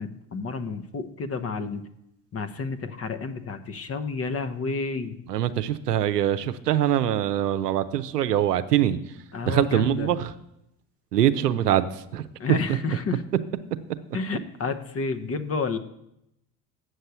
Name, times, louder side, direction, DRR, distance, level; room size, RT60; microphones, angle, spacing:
voice 1, 0.0-1.8 2.3-5.2 9.3-10.1 12.4-13.2 14.1-15.8, left 4 dB, 30° left, 10 dB, 1.0 m, -30 dB
voice 2, 5.3-9.0 9.5-10.3 11.1-12.3, right 11 dB, 85° right, 12 dB, 0.7 m, -23 dB
8.0 x 6.6 x 8.2 m, 0.83 s
hypercardioid pair, 65°, 46 cm